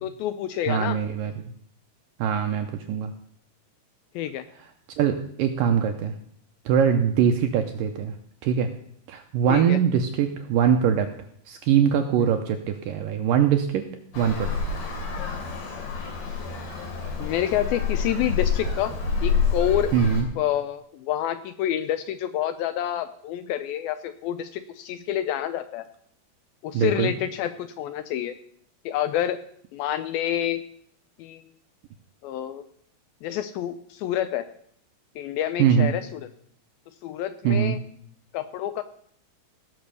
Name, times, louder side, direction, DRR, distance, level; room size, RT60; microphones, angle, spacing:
voice 1, 0.0-1.0 4.2-4.5 9.5-9.8 12.2-12.3 17.2-18.9 19.2-19.9 20.4-25.8 26.6-28.3 28.9-29.4 29.7-30.6 31.2-31.4 32.2-32.6 33.2-34.5 35.2-36.3 37.0-37.8 38.3-38.8, left 11 dB, 80° left, 11 dB, 2.2 m, -28 dB
voice 2, 0.7-1.5 2.2-3.1 5.0-6.1 6.7-8.1 8.4-8.7 9.1-11.1 11.5-13.8 14.2-14.6 19.9-20.3 26.7-27.1 35.6-35.9 37.4-37.8, right 8 dB, 80° right, 6 dB, 2.0 m, -22 dB
Traffic noise roadway noise, 14.1-20.2, left 5 dB, 55° left, 3.8 m, -28 dB
17.0 x 6.0 x 6.8 m, 0.65 s
omnidirectional pair, 4.7 m